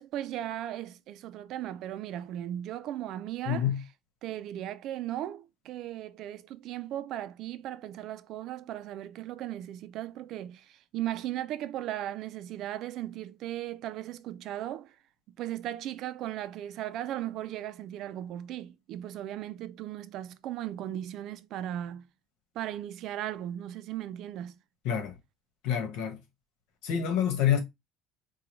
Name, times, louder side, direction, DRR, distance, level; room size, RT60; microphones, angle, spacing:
voice 1, 0.0-3.7 4.2-15.0 15.4-22.1 22.5-24.5, right 12 dB, 55° right, 0.4 m, -37 dB
voice 2, 3.5-3.8 24.8-25.1 25.6-26.2 26.8-27.6, left 9 dB, 75° left, 1.2 m, -27 dB
4.9 x 2.3 x 3.0 m
cardioid pair, 150°, 0 cm